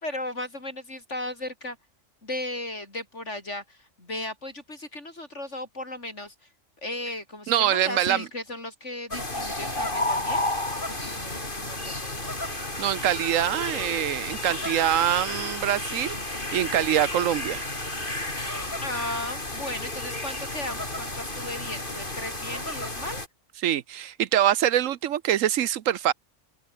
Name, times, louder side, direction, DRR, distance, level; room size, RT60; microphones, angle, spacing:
voice 1, 0.0-1.8 2.2-6.3 6.8-10.6 10.9-12.3 18.8-23.2, left 1 dB, 65° left, 5.8 m, -36 dB
voice 2, 7.5-8.3 12.8-16.2 16.5-17.6 23.6-26.1, right 11 dB, 85° right, 1.2 m, -24 dB
sound 1, 9.1-23.3, left 1 dB, 40° left, 5.2 m, -32 dB
open air
omnidirectional pair, 1.3 m